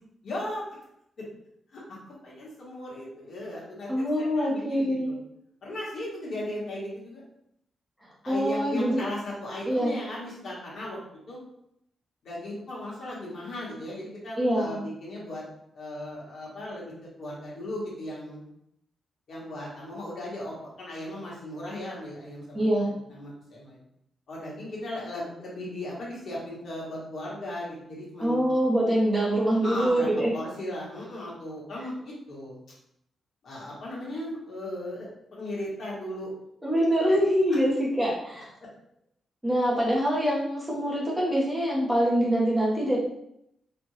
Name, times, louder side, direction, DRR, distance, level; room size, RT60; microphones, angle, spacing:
voice 1, 0.2-0.6 1.7-1.8 2.1-4.1 4.3-5.2 5.6-7.2 8.2-11.4 12.2-15.4 15.7-18.4 19.3-22.7 23.1-23.8 24.3-28.4 29.6-32.6 33.4-36.3, left 1 dB, 65° left, -5 dB, 1.4 m, -37 dB
voice 2, 3.9-5.1 8.3-9.0 9.7-9.9 14.4-14.8 22.5-22.9 28.2-30.3 36.6-38.5 39.4-43.0, equal, 10° right, -6 dB, 1.1 m, -24 dB
3.4 x 2.5 x 3.1 m, 0.77 s
cardioid pair, 105°, 0 cm